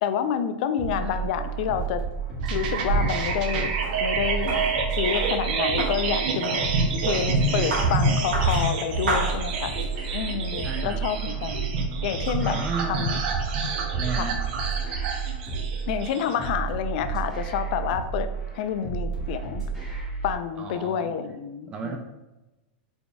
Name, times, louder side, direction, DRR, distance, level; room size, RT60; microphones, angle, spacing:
voice 1, 0.0-2.0 2.5-3.7 4.0-4.6 4.9-9.8 10.1-11.6 12.0-12.6 12.9-13.2 14.2-14.3 15.9-18.3 18.5-19.6 20.2-22.0, left 8 dB, 60° left, 10 dB, 0.3 m, -28 dB
sound 1, 0.8-20.4, right 6 dB, ahead, 1.2 m, -32 dB
sound 2, 2.4-16.5, right 3 dB, 60° right, 0.6 m, -28 dB
sound 3, 2.4-10.0, right 1 dB, 90° right, 1.4 m, -33 dB
voice 2, 10.6-11.0 12.5-13.1 14.0-14.4 20.6-21.1 21.7-22.0, right 5 dB, 20° right, 2 dB, 0.4 m, -33 dB
3.9 x 3.4 x 2.3 m, 1.0 s
supercardioid pair, 145°, 5 cm